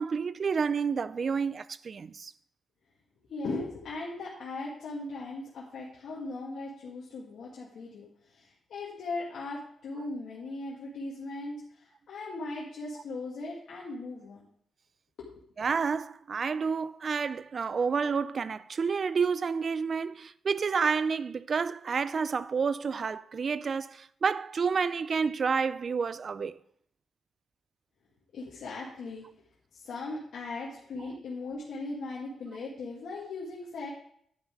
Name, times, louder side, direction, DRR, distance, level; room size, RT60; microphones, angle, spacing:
voice 1, 0.0-2.3 15.6-26.6, right 5 dB, 50° right, 0.4 m, -29 dB
voice 2, 3.3-14.5 15.2-15.3 28.3-29.2 29.7-33.9, left 3 dB, 75° left, 2.1 m, -38 dB
11.0 x 5.5 x 4.8 m
cardioid pair, 90°, 0 cm